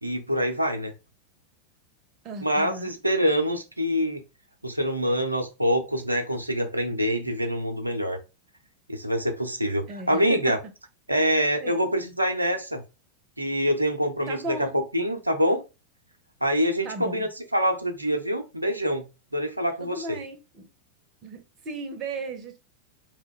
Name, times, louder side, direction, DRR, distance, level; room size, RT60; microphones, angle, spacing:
voice 1, 0.0-0.9 2.4-4.2 4.6-8.2 8.9-10.6 11.1-12.8 13.4-15.6 16.4-19.0 19.3-20.2, equal, 85° right, 0.5 m, -25 dB
voice 2, 2.2-2.9 9.9-10.6 11.2-11.3 11.6-11.8 14.3-14.8 16.8-17.2 19.8-20.7 21.2-22.6, right 3 dB, 35° right, 0.7 m, -36 dB
2.8 x 2.2 x 3.7 m
figure-of-eight pair, 90°, 0 cm